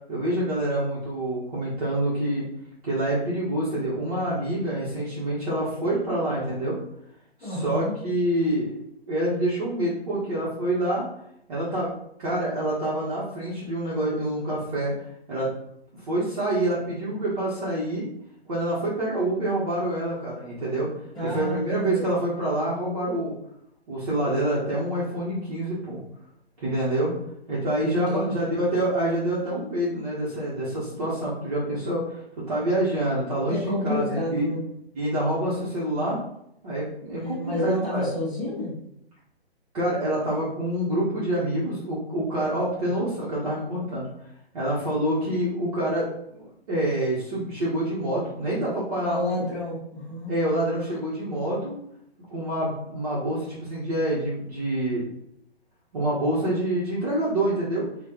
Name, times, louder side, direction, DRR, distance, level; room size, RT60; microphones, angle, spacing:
voice 1, 0.1-2.5 2.8-6.8 7.4-11.1 11.5-11.9 12.2-14.9 15.3-15.5 16.1-18.1 18.5-20.9 21.2-23.3 23.9-26.0 26.6-27.1 27.5-32.2 32.5-34.5 34.9-36.2 36.6-38.1 39.7-44.1 44.5-46.1 46.3-49.2 50.3-51.8 52.3-55.0 55.9-57.9, right 1 dB, 35° right, -8 dB, 1.2 m, -27 dB
voice 2, 7.4-7.9 21.1-22.0 27.9-28.6 33.5-34.7 37.1-38.8 42.8-42.9 49.0-50.3, left 1 dB, ahead, -13 dB, 0.7 m, -29 dB
4.2 x 2.6 x 3.7 m, 0.76 s
hypercardioid pair, 160°, 32 cm